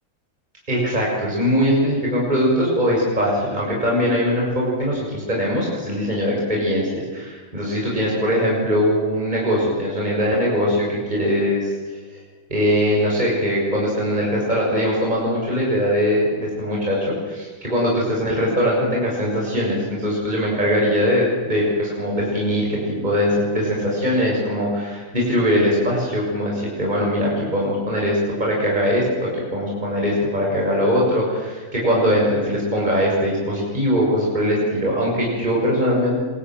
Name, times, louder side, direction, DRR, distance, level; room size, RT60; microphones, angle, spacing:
voice 1, 0.7-11.7 12.5-36.2, equal, 20° right, -3 dB, 6.9 m, -21 dB
27.0 x 23.0 x 9.2 m, 1.4 s
omnidirectional pair, 2.1 m